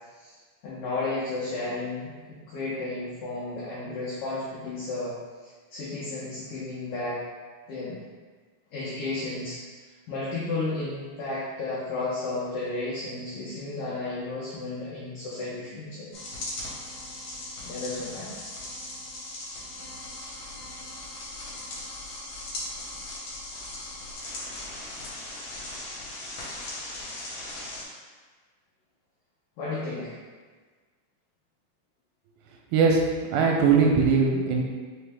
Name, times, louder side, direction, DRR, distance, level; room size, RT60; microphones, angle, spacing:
voice 1, 0.6-5.1 5.4-7.2 7.7-8.0 8.7-9.6 10.1-16.1 16.4-16.5 17.6-18.3 29.6-30.1, left 2 dB, 90° left, -8 dB, 1.8 m, -33 dB
sound 1, 16.1-27.8, left 2 dB, 70° left, 1.7 m, -38 dB
voice 2, 33.3-34.6, right 5 dB, 85° right, 0 dB, 2.7 m, -20 dB
6.2 x 2.1 x 3.5 m, 1.4 s
omnidirectional pair, 4.8 m